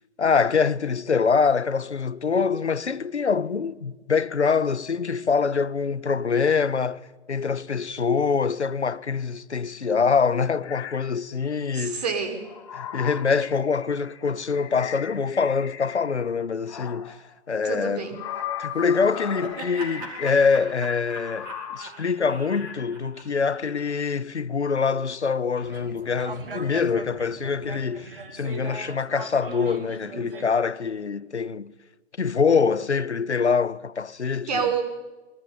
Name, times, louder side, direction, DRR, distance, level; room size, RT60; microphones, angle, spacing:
voice 1, 0.2-7.0 7.3-12.0 12.7-17.2 17.5-18.1 18.6-31.7 32.2-34.7, left 5 dB, 70° left, 1.3 m, -24 dB
sound 1, 10.6-11.1 12.2-16.3 16.7-17.3 18.0-20.9 21.1-21.9 22.5-23.0, left 9 dB, 25° left, 2.3 m, -38 dB
voice 2, 11.7-12.4 17.6-18.2 34.5-34.8, right 6 dB, 35° right, 5.2 m, -27 dB
Laughter, 18.8-23.9, right 2 dB, 15° right, 4.9 m, -41 dB
sound 2, 25.6-30.5, right 3 dB, 50° right, 3.8 m, -39 dB
27.5 x 22.5 x 9.6 m
figure-of-eight pair, 155°, 35 cm